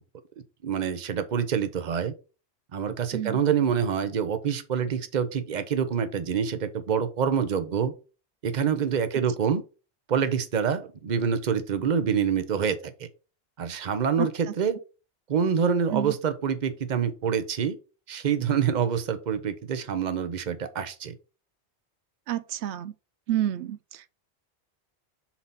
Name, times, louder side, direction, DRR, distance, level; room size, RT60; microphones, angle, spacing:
voice 1, 0.6-2.1 2.7-7.9 8.4-9.6 10.1-13.1 13.6-14.8 15.3-17.8 18.1-21.2, right 7 dB, 45° right, 0.8 m, -26 dB
voice 2, 22.3-22.9 23.3-24.1, right 12 dB, 85° right, 0.9 m, -29 dB
5.9 x 4.0 x 5.7 m
omnidirectional pair, 1.1 m